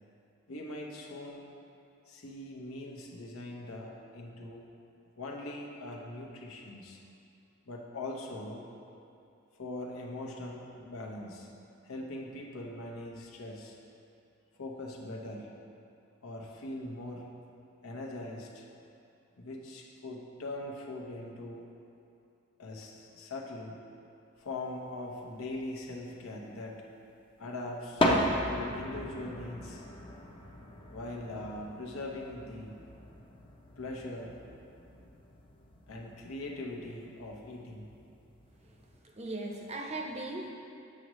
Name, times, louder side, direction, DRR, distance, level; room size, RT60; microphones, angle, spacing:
voice 1, 0.5-1.4 2.1-4.7 5.2-7.0 7.6-8.6 9.6-11.5 11.8-13.8 14.5-15.5 16.2-17.3 17.8-18.7 19.4-21.7 22.6-23.7 24.4-26.8 27.4-28.0 28.5-29.8 30.9-32.8 33.8-34.4 34.9-35.0 35.9-37.9, left 2 dB, 85° left, -1 dB, 0.9 m, -41 dB
sound 1, 24.6-24.7 25.5-26.4 27.4-27.5 27.7-39.0, left 1 dB, 25° left, 0.6 m, -37 dB
voice 2, 39.0-40.5, right 2 dB, 30° right, 0 dB, 0.6 m, -38 dB
7.6 x 6.3 x 3.1 m, 2.6 s
head